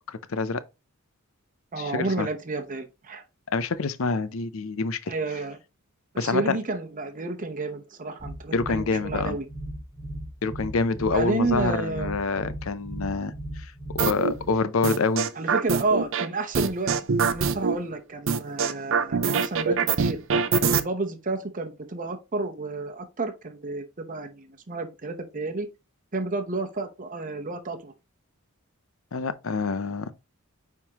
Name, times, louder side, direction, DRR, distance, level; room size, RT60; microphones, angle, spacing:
voice 1, 0.1-0.6 1.8-2.3 3.5-5.1 6.2-6.6 8.5-9.4 10.4-15.3 29.1-30.1, left 4 dB, 70° left, 0.6 m, -27 dB
voice 2, 1.7-3.2 5.1-5.6 6.1-9.5 11.1-12.1 15.4-20.2 20.6-25.7 26.1-27.9, right 3 dB, 40° right, 0.9 m, -30 dB
sound 1, 8.2-14.6, right 1 dB, 5° left, 3.5 m, -37 dB
sound 2, 14.0-14.3 14.8-16.3 16.5-17.8 18.3-20.8, right 5 dB, 65° right, 0.6 m, -23 dB
9.2 x 3.7 x 2.9 m
head